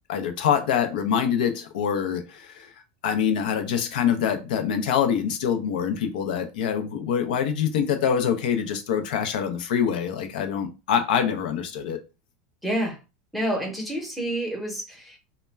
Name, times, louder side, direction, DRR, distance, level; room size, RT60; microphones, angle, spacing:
voice 1, 0.1-2.7 3.0-12.0, left 8 dB, 80° left, 0.5 m, -25 dB
voice 2, 12.6-13.0 13.3-15.2, right 1 dB, ahead, 0.7 m, -28 dB
2.2 x 2.1 x 3.2 m
supercardioid pair, 130°, 5 cm